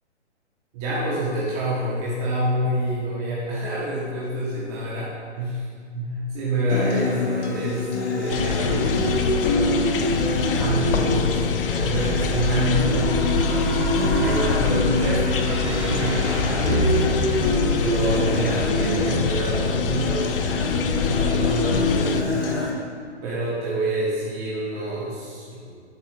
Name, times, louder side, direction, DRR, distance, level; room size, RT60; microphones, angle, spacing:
voice 1, 0.7-5.6 5.9-9.2 10.6-13.1 14.1-16.9 17.8-20.3 21.0-22.5 23.2-25.8, right 1 dB, 30° right, -7 dB, 1.2 m, -27 dB
Acoustic guitar, 6.7-22.7, left 3 dB, 70° left, 1.3 m, -25 dB
sound 1, 8.3-22.2, left 7 dB, 50° left, 0.5 m, -27 dB
sound 2, 11.8-18.7, right 2 dB, 30° left, 1.3 m, -28 dB
7.6 x 5.6 x 2.5 m, 2.1 s
hypercardioid pair, 130°, 35 cm